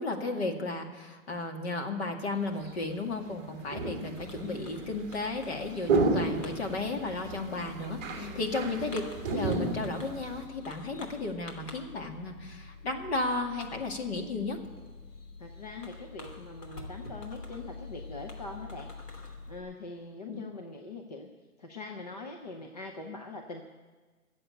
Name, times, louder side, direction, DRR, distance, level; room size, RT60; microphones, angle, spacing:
voice 1, 0.0-9.0 9.3-14.6 20.3-20.4, left 3 dB, 45° left, 3 dB, 2.2 m, -34 dB
sound 1, 2.6-2.8 3.3-10.4, right 3 dB, 10° right, 1.4 m, -33 dB
Fireworks, 4.2-19.6, left 3 dB, 90° left, 3.3 m, -47 dB
voice 2, 15.4-18.9 19.2-21.3 21.6-23.6, left 3 dB, 25° left, 3 dB, 0.7 m, -42 dB
15.0 x 8.0 x 9.9 m, 1.4 s
hypercardioid pair, 165°, 45 cm